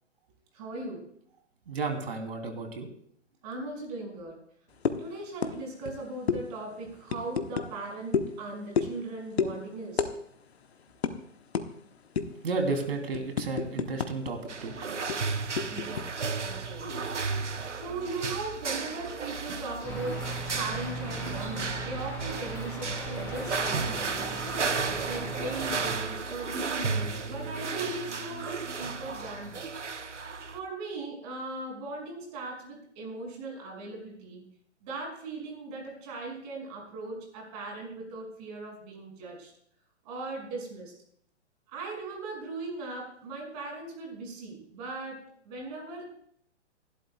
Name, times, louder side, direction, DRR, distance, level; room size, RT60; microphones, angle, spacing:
voice 1, 0.5-1.1 3.4-4.4 5.0-10.1 15.7-16.2 16.4-17.2 17.7-29.7 30.5-34.4 34.8-39.5 40.0-40.9 41.7-46.0, right 3 dB, 35° right, 0 dB, 6.0 m, -39 dB
voice 2, 1.7-2.9 12.4-14.7, right 3 dB, 55° right, 4 dB, 3.1 m, -32 dB
sound 1, 4.9-5.1 5.4-5.6 5.8-6.0 6.3-6.4 7.1-7.7 8.1-8.3 8.8-9.0 9.4-9.5 10.0-10.1 10.4-10.6 11.0-11.1 11.5-11.7 12.2-12.4 12.8-14.3 14.6-14.7 15.1-16.0, left 6 dB, 60° left, 1.2 m, -29 dB
sound 2, 14.5-30.6, right 4 dB, 75° right, 1.1 m, -34 dB
sound 3, 19.8-25.9, right 2 dB, 5° left, 7.0 m, -38 dB
29.0 x 12.0 x 2.3 m, 0.67 s
figure-of-eight pair, 120°, 35 cm